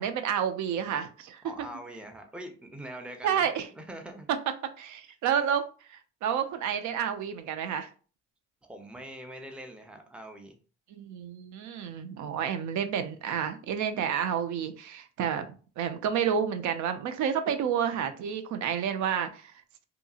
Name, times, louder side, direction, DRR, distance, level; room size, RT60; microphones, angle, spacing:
voice 1, 0.0-1.4 3.2-3.7 4.8-7.9 10.9-15.5 15.8-19.5, right 8 dB, 75° right, 8 dB, 0.5 m, -30 dB
voice 2, 1.4-4.3 8.6-10.6, right 1 dB, 5° right, 4 dB, 0.6 m, -43 dB
2.7 x 2.6 x 2.4 m, 0.38 s
cardioid pair, 90°, 30 cm